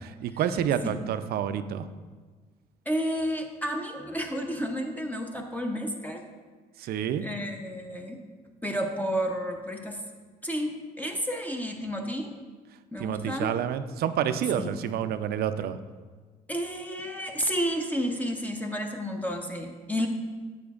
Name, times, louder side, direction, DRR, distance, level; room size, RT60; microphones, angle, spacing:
voice 1, 0.2-1.9 6.8-7.3 13.0-15.8, right 9 dB, 70° right, 11 dB, 0.4 m, -28 dB
voice 2, 2.9-6.2 7.2-8.2 8.6-10.0 10.4-12.3 12.9-13.5 14.6-14.7 16.5-20.1, equal, 10° left, 3 dB, 0.7 m, -31 dB
8.5 x 7.1 x 2.4 m, 1.4 s
supercardioid pair, 75°, 17 cm